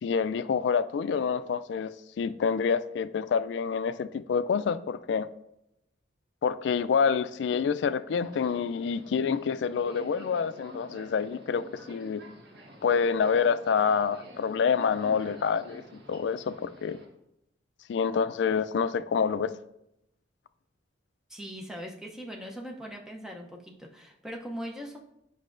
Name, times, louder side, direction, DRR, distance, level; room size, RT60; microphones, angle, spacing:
voice 1, 0.0-5.3 6.4-12.2 12.8-15.8 16.1-17.0 17.9-19.5, left 6 dB, 65° left, 0.3 m, -27 dB
Subway metro underground, 8.1-17.0, right 1 dB, 65° right, 1.3 m, -49 dB
voice 2, 21.3-25.0, equal, 5° right, 0.6 m, -40 dB
8.4 x 5.6 x 2.5 m
head